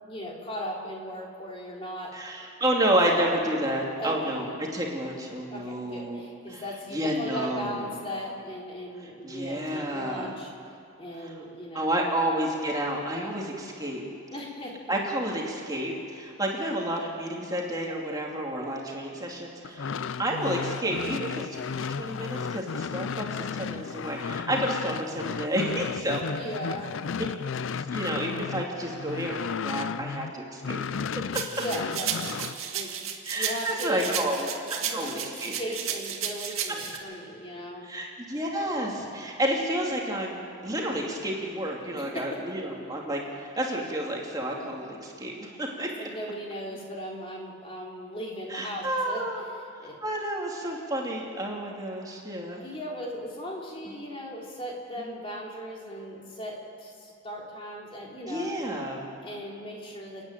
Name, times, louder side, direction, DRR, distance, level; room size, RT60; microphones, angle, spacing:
voice 1, 0.0-2.1 4.0-4.5 5.5-10.5 11.0-12.2 14.3-15.0 26.3-26.9 31.5-34.2 34.8-35.3 35.6-37.8 41.9-42.4 46.0-49.2 49.8-50.0 52.6-58.5 59.2-60.2, equal, 25° left, -2 dB, 3.4 m, -37 dB
voice 2, 2.1-4.5 4.7-6.2 6.5-6.6 6.9-7.8 9.2-10.3 11.7-14.0 14.9-19.9 20.2-21.5 22.0-26.4 27.2-27.3 27.8-30.9 33.2-35.1 35.4-35.5 37.8-45.9 48.5-49.4 50.0-52.6 53.9-54.0 58.3-59.1, right 1 dB, 15° right, -1 dB, 2.6 m, -30 dB
sound 1, 19.6-30.3 30.6-32.6, left 6 dB, 65° left, 0.4 m, -34 dB
sound 2, 31.3-37.0, right 8 dB, 80° right, 1.9 m, -33 dB
30.0 x 10.0 x 9.1 m, 2.6 s
head